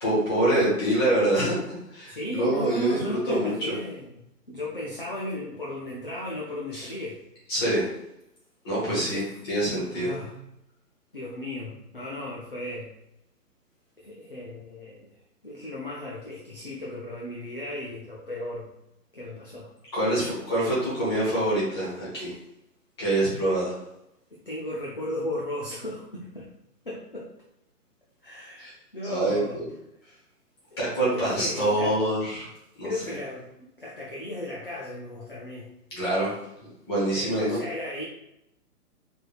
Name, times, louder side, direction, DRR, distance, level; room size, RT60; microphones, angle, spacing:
voice 1, 0.0-3.7 6.7-6.9 7.5-7.9 8.6-10.1 19.9-22.3 23.0-23.7 28.6-28.7 29.0-29.7 30.8-32.5 32.8-32.9 35.9-36.3 36.9-37.6, right 1 dB, 15° left, -7 dB, 1.0 m, -25 dB
voice 2, 2.1-7.2 8.8-9.3 9.9-10.4 11.1-12.9 14.0-15.1 15.4-18.7 19.1-19.7 24.3-26.5 26.9-27.3 28.2-29.6 30.0-30.2 30.7-30.8 31.1-32.0 32.8-35.7 37.1-38.1, left 1 dB, 40° left, -5 dB, 0.4 m, -35 dB
4.3 x 3.4 x 2.3 m, 0.85 s
hypercardioid pair, 165°, 48 cm